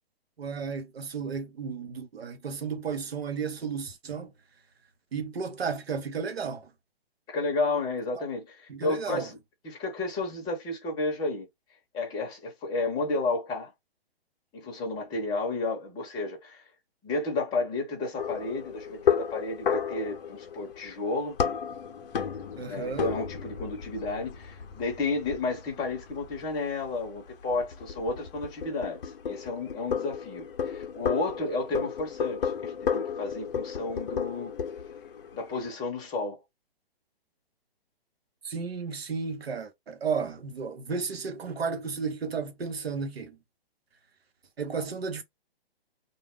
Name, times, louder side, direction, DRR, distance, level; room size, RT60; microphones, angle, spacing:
voice 1, 0.4-4.3 5.1-6.7 8.1-8.2 8.7-9.3 22.6-23.1 38.4-43.4 44.6-45.2, right 5 dB, 80° right, 0.9 m, -33 dB
voice 2, 7.3-9.4 9.6-11.5 11.9-13.7 14.5-16.6 17.0-21.4 22.7-29.0 29.2-34.5 35.3-36.4, left 3 dB, 15° left, 0.8 m, -32 dB
sound 1, 18.2-35.7, left 7 dB, 60° left, 0.7 m, -33 dB
2.3 x 2.1 x 3.5 m
figure-of-eight pair, 130°, 30 cm